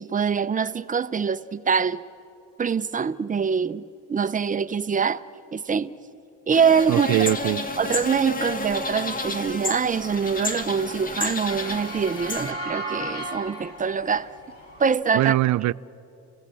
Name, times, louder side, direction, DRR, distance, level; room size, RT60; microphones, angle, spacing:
voice 1, 0.0-2.0 2.6-3.8 4.1-5.2 5.5-5.9 6.5-7.1 7.8-14.3 14.8-15.3, right 6 dB, 25° right, 0.7 m, -24 dB
sound 1, 6.5-12.5, left 3 dB, 30° left, 1.6 m, -31 dB
voice 2, 6.9-7.6 15.1-15.7, right 16 dB, 70° right, 0.5 m, -22 dB
Motor vehicle (road) / Siren, 7.7-14.8, right 1 dB, 55° left, 5.0 m, -37 dB
29.5 x 16.5 x 7.7 m
cardioid pair, 90°, 30 cm